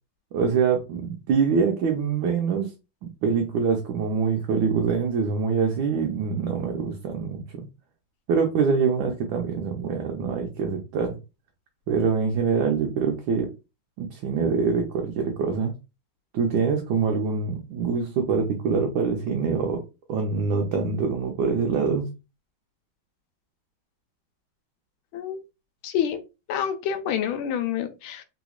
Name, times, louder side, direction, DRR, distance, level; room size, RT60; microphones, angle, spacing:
voice 1, 0.3-2.7 3.2-7.7 8.3-11.2 11.9-13.5 14.0-15.7 16.3-19.8 20.1-22.1, right 5 dB, 75° right, 1.3 m, -24 dB
voice 2, 25.8-26.2 26.5-28.2, left 9 dB, 80° left, 1.4 m, -27 dB
3.4 x 3.0 x 2.3 m
omnidirectional pair, 2.3 m